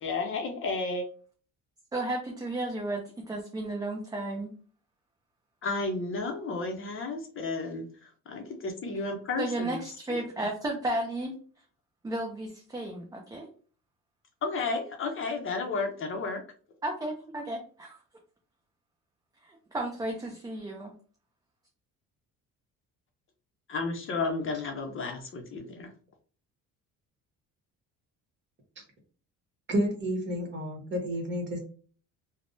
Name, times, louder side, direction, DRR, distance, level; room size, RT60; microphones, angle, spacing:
voice 1, 0.0-1.1 5.6-9.8 10.1-10.5 14.4-16.4 23.7-25.9, left 3 dB, 40° left, 4 dB, 0.6 m, -32 dB
voice 2, 1.9-4.5 9.4-11.3 12.0-13.5 16.8-18.0 19.4-20.9, right 1 dB, 10° right, 0 dB, 0.4 m, -33 dB
voice 3, 29.7-31.6, equal, 35° right, 1 dB, 1.2 m, -30 dB
3.3 x 2.0 x 2.6 m, 0.41 s
cardioid pair, 120°, 32 cm